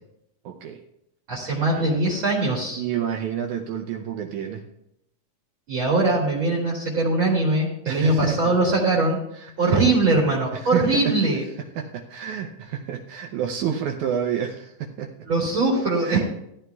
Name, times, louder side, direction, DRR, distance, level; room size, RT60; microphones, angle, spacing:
voice 1, 0.5-0.8 1.5-2.2 2.8-4.6 7.9-8.4 9.4-9.8 10.6-11.1 11.8-15.1 16.0-16.2, right 8 dB, 75° right, 3 dB, 2.0 m, -29 dB
voice 2, 1.3-2.8 5.7-9.2 9.6-11.4 15.3-16.2, right 2 dB, 40° right, -5 dB, 2.4 m, -21 dB
16.0 x 12.5 x 2.3 m, 0.79 s
omnidirectional pair, 3.9 m